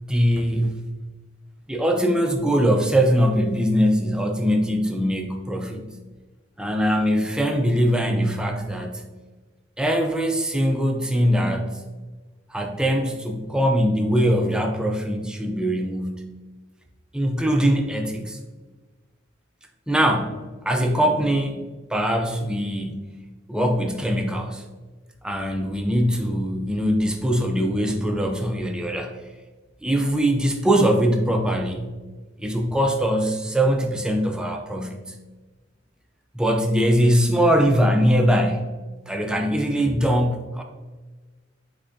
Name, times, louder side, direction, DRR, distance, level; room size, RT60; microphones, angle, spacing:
voice 1, 0.1-0.9 1.7-5.8 6.6-9.1 9.8-11.8 12.5-16.3 17.1-18.4 19.9-21.6 21.9-23.0 23.5-24.6 25.2-29.2 29.8-31.9 32.4-35.1 36.3-38.7 39.1-40.6, equal, 5° right, 3 dB, 0.4 m, -22 dB
5.4 x 3.6 x 2.6 m, 1.3 s
head